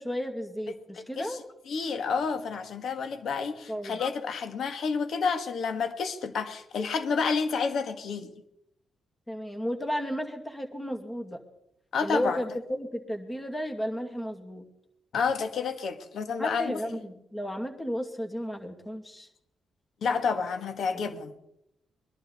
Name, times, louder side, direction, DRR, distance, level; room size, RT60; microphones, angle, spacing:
voice 1, 0.0-1.4 3.7-4.0 9.3-11.4 12.0-14.7 16.4-19.3 20.9-21.0, equal, 15° left, 4 dB, 2.3 m, -33 dB
voice 2, 1.7-8.3 11.9-12.4 15.1-17.0 20.0-21.3, left 5 dB, 70° left, 8 dB, 1.7 m, -29 dB
21.0 x 11.5 x 4.2 m, 0.79 s
cardioid pair, 75°, 0 cm